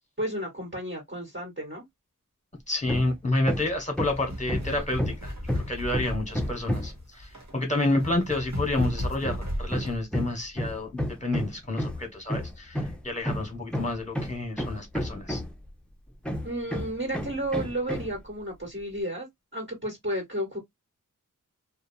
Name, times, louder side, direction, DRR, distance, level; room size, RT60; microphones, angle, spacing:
voice 1, 0.2-1.8 4.7-4.8 16.4-19.3 19.5-20.6, right 1 dB, 35° right, 1.5 m, -32 dB
voice 2, 2.7-5.3 5.7-15.4, left 2 dB, 20° left, 1.3 m, -29 dB
Hammer, 2.9-3.2 3.5-7.0 8.8-15.7 16.3-18.2, equal, 5° left, 0.6 m, -31 dB
sound 1, 4.0-10.0, equal, 55° right, 1.2 m, -36 dB
2.7 x 2.2 x 2.7 m
wide cardioid pair, 55°, 33 cm